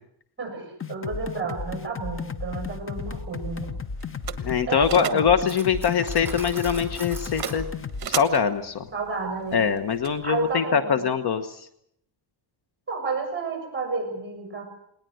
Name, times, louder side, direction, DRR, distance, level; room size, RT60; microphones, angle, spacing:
voice 1, 0.4-3.7 4.7-5.2 8.9-9.6 10.2-11.0 12.9-14.7, right 4 dB, 20° right, 4 dB, 6.7 m, -31 dB
sound 1, 0.8-8.1, left 5 dB, 25° left, 0.9 m, -34 dB
sound 2, 2.6-10.6, right 9 dB, 45° right, 1.4 m, -39 dB
voice 2, 4.4-7.7 8.1-8.9 9.5-11.7, left 7 dB, 50° left, 10 dB, 1.2 m, -23 dB
Cutlery silverware, 5.4-7.6, right 3 dB, 5° right, 3.5 m, -41 dB
20.0 x 19.5 x 7.9 m, 0.71 s
cardioid pair, 145°, 49 cm